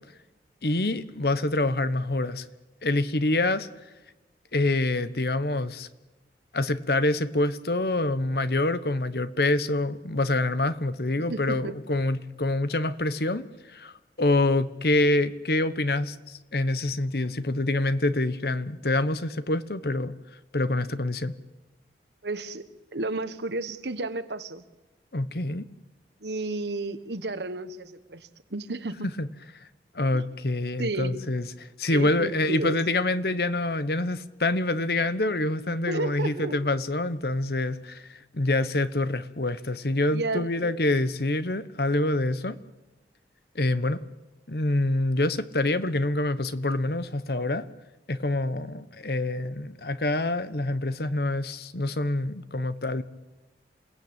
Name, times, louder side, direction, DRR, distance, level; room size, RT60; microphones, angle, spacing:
voice 1, 0.6-2.4 2.8-3.7 4.5-5.9 6.5-13.9 14.2-20.1 20.5-21.3 25.1-25.7 29.2-29.3 29.9-31.5 31.8-42.6 43.5-44.0 44.5-47.7 48.1-53.0, left 2 dB, 60° left, 1.1 m, -26 dB
voice 2, 11.2-11.7 22.2-24.6 26.2-29.1 30.1-30.2 30.8-31.2 31.9-32.8 35.9-36.5 40.1-40.8, right 2 dB, 75° right, 1.4 m, -32 dB
28.0 x 18.0 x 8.8 m
head